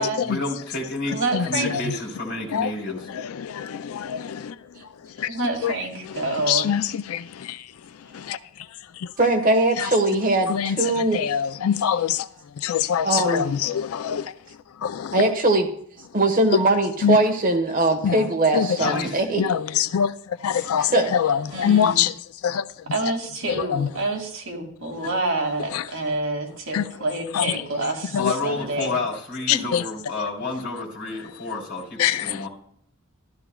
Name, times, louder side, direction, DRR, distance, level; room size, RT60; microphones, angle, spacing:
voice 1, 0.0-3.1 18.8-19.2 28.1-32.5, left 2 dB, 50° left, 3.4 m, -30 dB
voice 2, 1.1-1.8 5.3-6.7 21.5-22.0 22.9-28.9, right 2 dB, 60° right, 2.2 m, -28 dB
voice 3, 3.1-4.5 5.2-5.3 5.6-5.7 6.5-7.6 8.1-8.4 9.8-9.9 10.5-10.8 11.1-12.3 12.6-14.3 14.8-15.1 17.0-17.2 18.0-18.1 18.5-18.9 19.4-20.1 20.4-22.1 22.4-22.6 23.7-23.9 25.7-25.8 26.7-26.8 27.3-27.5 28.1-28.3 29.5-29.8 32.0-32.4, left 8 dB, 75° left, 0.4 m, -24 dB
voice 4, 9.2-11.2 13.0-13.5 15.1-15.7 16.1-19.4 20.6-21.1 29.5-29.6, right 2 dB, 40° right, 1.2 m, -21 dB
14.0 x 12.5 x 2.2 m
head